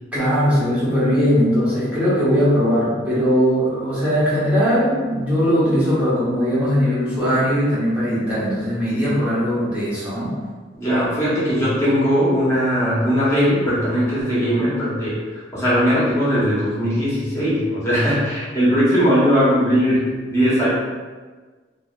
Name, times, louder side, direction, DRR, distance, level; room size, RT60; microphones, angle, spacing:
voice 1, 0.1-10.3, equal, 5° right, -11 dB, 1.0 m, -19 dB
voice 2, 10.8-20.7, equal, 15° left, -10 dB, 1.2 m, -19 dB
2.7 x 2.7 x 2.5 m, 1.4 s
head